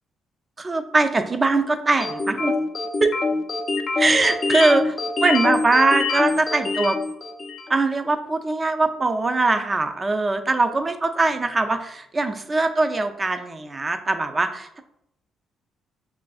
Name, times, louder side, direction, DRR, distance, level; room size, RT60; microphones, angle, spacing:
voice 1, 0.6-2.5 3.0-3.2 4.0-5.0 5.2-7.0 7.7-14.8, right 3 dB, 25° right, 7 dB, 0.4 m, -21 dB
sound 1, 2.0-7.7, left 3 dB, 40° left, 0.4 m, -25 dB
5.7 x 2.5 x 2.3 m, 0.77 s
cardioid pair, 90°, 0 cm